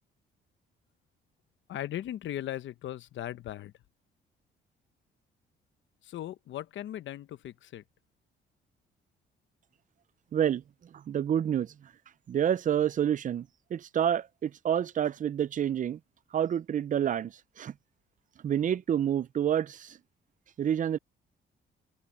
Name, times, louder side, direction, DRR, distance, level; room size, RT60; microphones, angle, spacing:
voice 1, 1.7-3.7 6.1-7.8, left 12 dB, 70° left, 0.9 m, -38 dB
voice 2, 10.3-10.6 10.9-11.9 12.3-16.0 16.3-17.7 18.4-20.0 20.6-21.0, right 9 dB, 40° right, 0.5 m, -28 dB
cardioid pair, 90°, 20 cm